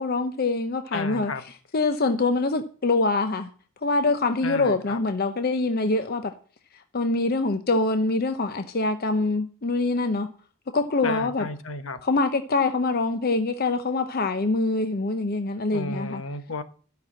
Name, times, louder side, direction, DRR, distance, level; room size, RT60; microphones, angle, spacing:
voice 1, 0.0-1.3 1.7-3.5 3.8-6.3 6.9-10.3 10.7-11.5 12.0-16.2, left 3 dB, 45° left, 0.7 m, -24 dB
voice 2, 0.9-1.4 4.4-5.0 11.0-12.0 15.7-16.6, left 3 dB, 70° left, 1.2 m, -33 dB
13.0 x 6.0 x 8.6 m
head